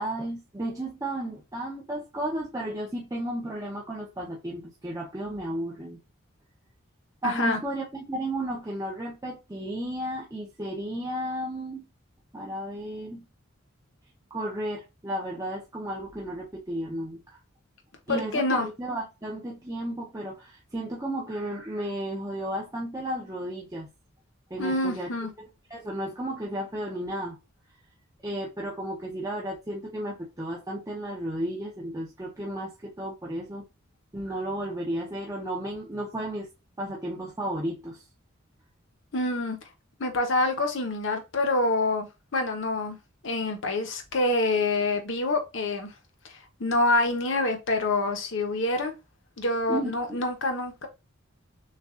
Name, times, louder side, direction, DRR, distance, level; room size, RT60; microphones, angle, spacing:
voice 1, 0.0-6.0 7.2-11.9 12.3-13.2 14.3-17.4 18.1-23.9 24.5-25.1 25.4-27.4 28.2-33.6 34.1-36.5 36.8-38.0 49.7-50.2, right 1 dB, 15° right, 0.6 m, -33 dB
voice 2, 7.2-7.6 18.1-18.7 24.6-25.3 39.1-39.6 40.0-42.1 42.3-43.0 43.2-45.9 46.3-48.9 49.4-50.9, left 2 dB, 60° left, 0.8 m, -26 dB
6.5 x 2.3 x 2.4 m
head